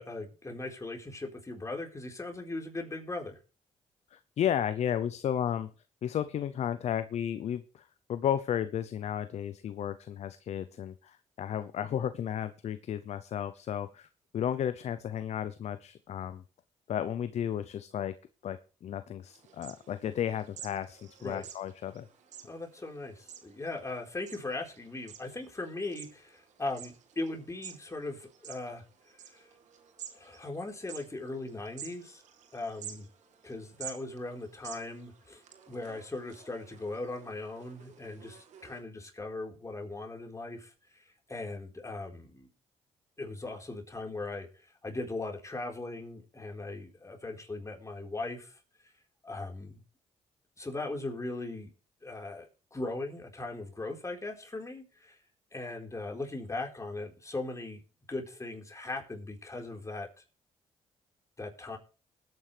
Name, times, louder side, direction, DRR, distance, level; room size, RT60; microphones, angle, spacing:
voice 1, 0.0-3.4 21.2-21.5 22.4-28.8 29.3-29.4 30.1-32.2 32.5-33.1 33.4-40.7 41.3-42.5 43.2-44.5 44.8-48.5 49.2-49.8 50.6-51.7 52.0-55.2 55.5-57.8 58.1-60.1 61.4-61.8, left 2 dB, 25° left, 1 dB, 4.3 m, -39 dB
voice 2, 4.1-5.7 6.0-14.1 14.3-16.4 16.9-18.2 18.4-22.1, left 9 dB, 65° left, 13 dB, 0.6 m, -33 dB
sound 1, 19.2-38.8, right 9 dB, 75° right, 2.0 m, -51 dB
20.0 x 9.4 x 3.4 m, 0.37 s
supercardioid pair, 55°, 12 cm